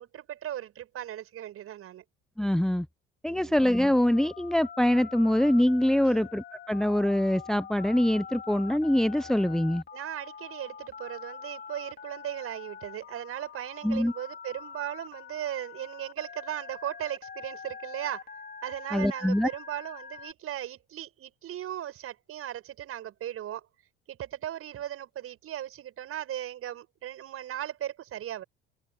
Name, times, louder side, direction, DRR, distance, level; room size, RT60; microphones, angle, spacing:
voice 1, 0.0-2.0 3.3-3.5 6.0-6.3 9.9-18.3 18.6-23.7 24.1-28.4, right 11 dB, 45° right, 7.4 m, -37 dB
voice 2, 2.4-2.9 3.2-9.8 13.8-14.1 18.9-19.5, left 1 dB, ahead, 0.8 m, -24 dB
Telephone, 3.6-20.3, left 6 dB, 30° left, 4.8 m, -45 dB
figure-of-eight pair, 60°, 31 cm